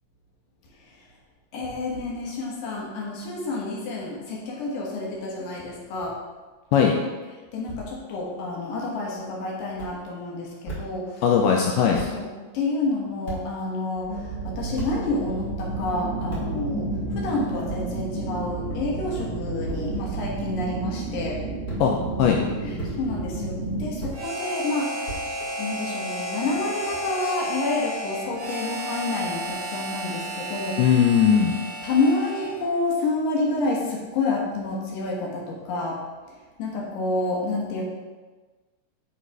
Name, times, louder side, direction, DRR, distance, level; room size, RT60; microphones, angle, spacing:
voice 1, 1.5-6.2 7.5-11.2 11.9-12.3 12.5-21.4 22.6-25.2 25.6-30.8 31.8-36.0 36.6-37.8, left 2 dB, 65° left, -3 dB, 2.5 m, -29 dB
sound 1, 9.7-9.9 10.6-10.8 11.6-11.7 12.0-12.1 13.3-13.4 14.8-14.9 16.3-16.4 17.7-17.8 18.7-18.8 19.7-19.8 20.9-21.3 21.7-21.8 22.2-22.4 22.8-22.9 24.0-24.2 25.1-25.7, right 2 dB, 45° left, 1.3 m, -34 dB
voice 2, 11.2-12.0 21.8-21.9 22.2-22.4 30.8-31.6, left 7 dB, 90° left, 1 dB, 2.2 m, -19 dB
sound 2, 14.0-24.0, right 3 dB, 80° right, 1.1 m, -31 dB
Harmonica, 24.1-32.7, right 1 dB, 45° right, 3.2 m, -32 dB
10.0 x 4.1 x 4.6 m, 1.3 s
omnidirectional pair, 5.0 m